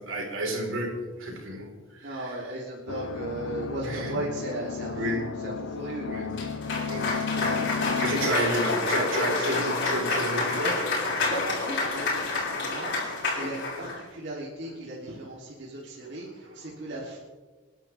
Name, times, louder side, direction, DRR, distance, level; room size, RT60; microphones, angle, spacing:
voice 1, 0.0-2.4 3.8-4.1 4.9-5.3 6.1-6.3 6.9-11.3 15.8-16.5, right 1 dB, 85° right, -1 dB, 4.6 m, -32 dB
voice 2, 2.0-6.2 11.1-17.2, right 1 dB, 60° right, -5 dB, 3.3 m, -36 dB
sound 1, 2.9-8.3, left 5 dB, 85° left, 0.7 m, -33 dB
Cheering / Applause, 6.3-14.0, left 3 dB, 60° left, 5.2 m, -28 dB
28.5 x 11.5 x 3.6 m, 1.3 s
head